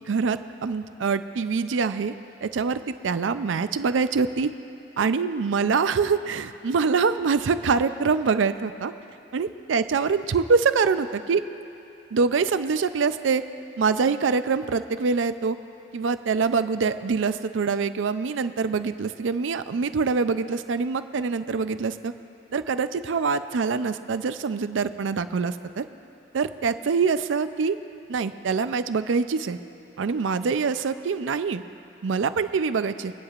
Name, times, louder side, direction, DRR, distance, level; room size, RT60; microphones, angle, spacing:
voice 1, 0.0-2.1 2.4-4.5 5.0-8.9 9.3-11.4 12.1-13.4 13.8-15.6 15.9-22.1 22.5-25.8 26.3-27.8 28.1-29.6 30.0-31.6 32.0-33.1, right 5 dB, 85° right, 12 dB, 0.4 m, -24 dB
25.5 x 9.6 x 2.5 m, 2.8 s
head